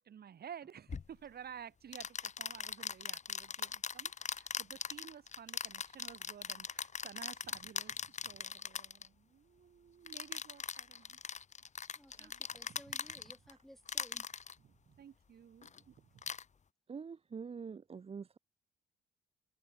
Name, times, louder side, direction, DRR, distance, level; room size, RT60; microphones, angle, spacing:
voice 1, 0.0-11.2 12.2-12.8 13.2-13.3 14.6-16.3, right 8 dB, 50° right, 1.8 m, -53 dB
sound 1, 0.9-1.1 1.9-9.1 10.1-13.5 13.9-14.5 15.6-15.8 16.2-16.4, left 6 dB, 35° left, 1.3 m, -41 dB
voice 2, 12.0-14.3, equal, ahead, 5.9 m, -58 dB
voice 3, 16.9-18.4, right 6 dB, 30° right, 0.8 m, -45 dB
cardioid pair, 90°, 20 cm